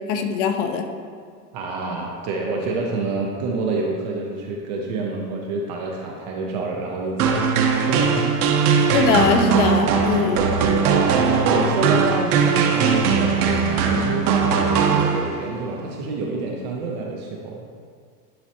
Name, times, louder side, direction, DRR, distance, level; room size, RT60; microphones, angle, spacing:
voice 1, 0.1-0.9 8.9-10.4, left 5 dB, 50° left, 6 dB, 0.7 m, -21 dB
voice 2, 1.5-8.3 10.1-10.5 10.9-17.6, right 3 dB, 30° right, -1 dB, 0.4 m, -28 dB
sound 1, 7.2-15.6, right 6 dB, 70° right, 1.0 m, -19 dB
10.5 x 4.0 x 2.8 m, 2.1 s
supercardioid pair, 150°, 47 cm